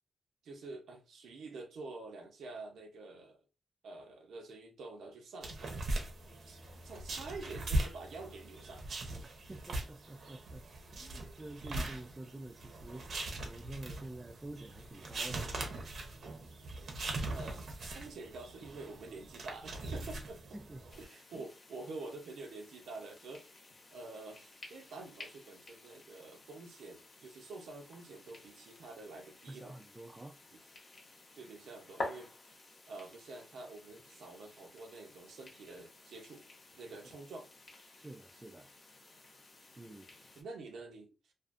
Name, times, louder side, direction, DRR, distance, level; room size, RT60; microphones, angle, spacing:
voice 1, 0.4-3.4 3.8-6.1 6.5-9.2 17.3-20.4 21.0-23.5 23.9-29.7 31.4-36.5 36.8-37.5 39.9-40.0 40.4-41.1, right 3 dB, 90° right, 0.7 m, -48 dB
sound 1, 5.4-21.0, right 2 dB, 55° right, 0.7 m, -40 dB
voice 2, 9.5-15.6 20.5-20.9 21.3-21.5 29.5-30.4 38.0-38.7 39.8-40.0, right 2 dB, 15° right, 0.4 m, -48 dB
sound 2, 20.9-40.4, left 2 dB, 45° left, 0.8 m, -51 dB
2.5 x 2.4 x 2.5 m
wide cardioid pair, 135°, 0 cm